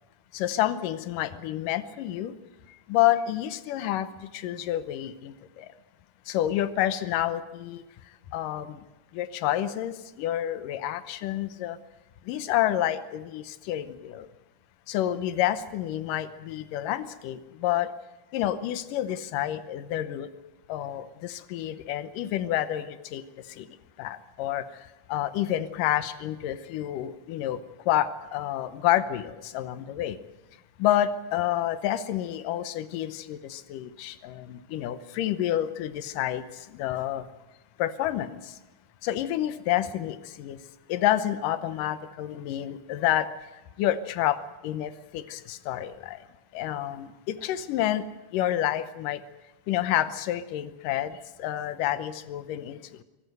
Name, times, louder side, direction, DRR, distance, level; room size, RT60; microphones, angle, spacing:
voice 1, 0.3-2.3 2.9-4.1 4.3-5.7 6.3-7.8 8.3-8.8 9.1-11.8 12.3-14.3 14.9-17.9 18.3-20.3 20.7-23.2 23.6-23.7 24.0-24.7 25.1-27.6 27.9-30.2 30.8-37.3 37.8-38.5 39.0-40.6 40.9-43.3 43.8-46.2 46.5-48.1 48.3-49.2 49.7-53.0, left 12 dB, 75° left, 13 dB, 2.0 m, -29 dB
24.0 x 18.0 x 7.9 m, 1.1 s
omnidirectional pair, 5.0 m